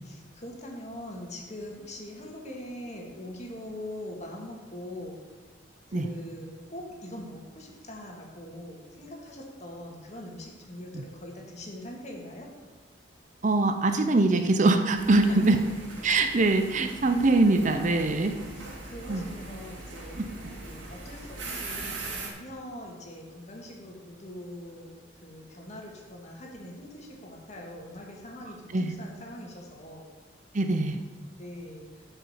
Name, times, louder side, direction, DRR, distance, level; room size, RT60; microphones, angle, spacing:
voice 1, 0.0-5.2 5.9-12.5 15.3-15.5 18.5-20.2 20.6-30.1 31.4-31.8, left 1 dB, 40° left, -1 dB, 2.2 m, -42 dB
voice 2, 13.4-15.6 16.0-18.4 19.1-19.3 20.2-20.3 28.7-28.9 30.5-31.0, right 2 dB, 40° right, 7 dB, 0.7 m, -23 dB
sound 1, 14.9-22.3, right 3 dB, 80° right, 2.4 m, -41 dB
11.0 x 5.7 x 7.4 m, 1.3 s
head